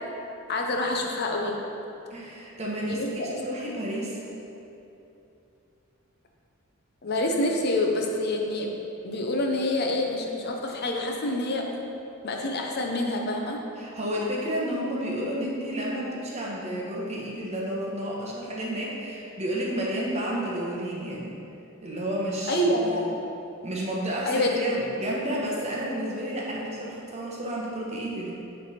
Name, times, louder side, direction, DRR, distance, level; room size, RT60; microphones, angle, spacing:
voice 1, 0.5-1.6 2.8-3.4 7.0-8.8 9.0-11.8 12.2-13.6 22.5-23.1 24.2-24.5, left 1 dB, 50° left, 1 dB, 0.6 m, -27 dB
voice 2, 2.1-4.2 13.8-21.4 21.8-22.7 23.0-23.1 23.6-28.3, equal, 30° right, -4 dB, 1.0 m, -31 dB
9.9 x 3.3 x 4.2 m, 2.8 s
head